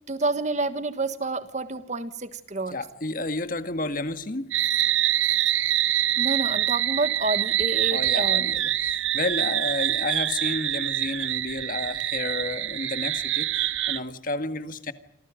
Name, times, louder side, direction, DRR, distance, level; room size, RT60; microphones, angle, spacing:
voice 1, 0.1-2.8 6.2-8.5, right 2 dB, 35° right, 11 dB, 1.4 m, -29 dB
voice 2, 2.7-4.5 7.9-14.9, left 2 dB, 45° left, 9 dB, 1.8 m, -31 dB
sound 1, 4.5-14.0, right 12 dB, 75° right, 1.1 m, -25 dB
28.5 x 26.5 x 5.1 m, 0.76 s
head